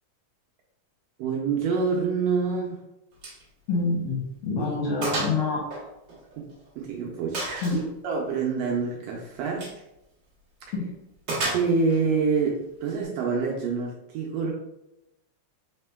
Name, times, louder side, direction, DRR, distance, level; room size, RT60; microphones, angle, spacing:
voice 1, 1.2-2.8 4.6-4.7 6.4-6.5 6.8-9.7 11.5-14.5, right 5 dB, 75° right, -1 dB, 1.6 m, -27 dB
Gunshot gunfire, 3.2-3.4 3.8-3.9 4.3-4.4 5.0-5.4 5.7-6.7 7.3-7.9 9.5-9.8 11.3-12.0, right 2 dB, 60° right, 1.2 m, -31 dB
voice 2, 3.7-5.7 7.6-7.7 10.7-10.8, left 3 dB, 75° left, -2 dB, 1.6 m, -26 dB
4.1 x 3.6 x 2.2 m, 0.87 s
omnidirectional pair, 3.3 m